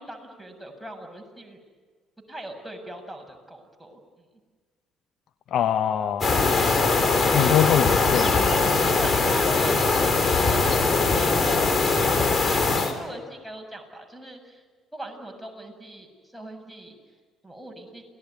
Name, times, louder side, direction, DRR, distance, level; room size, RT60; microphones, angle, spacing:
voice 1, 0.0-1.6 2.3-4.0 9.0-11.7 12.6-14.6 14.9-16.1 16.3-17.0 17.4-18.1, right 1 dB, ahead, 2 dB, 7.5 m, -39 dB
voice 2, 5.5-6.3 7.1-8.9, left 10 dB, 60° left, 10 dB, 1.0 m, -24 dB
sound 1, 6.2-12.9, left 3 dB, 35° left, 4.0 m, -21 dB
28.5 x 19.5 x 9.6 m, 1.5 s
hypercardioid pair, 55°, 0 cm